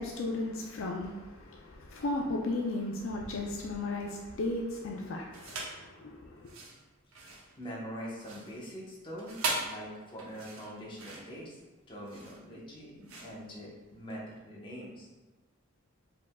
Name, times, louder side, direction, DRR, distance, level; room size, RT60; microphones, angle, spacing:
voice 1, 0.0-6.5, left 2 dB, 65° left, 0 dB, 0.4 m, -35 dB
sound 1, 5.3-5.8 6.4-14.2, right 3 dB, 80° right, 0.8 m, -40 dB
voice 2, 7.6-11.6 11.9-15.1, equal, 25° left, -5 dB, 0.9 m, -43 dB
4.8 x 3.5 x 2.2 m, 1.2 s
head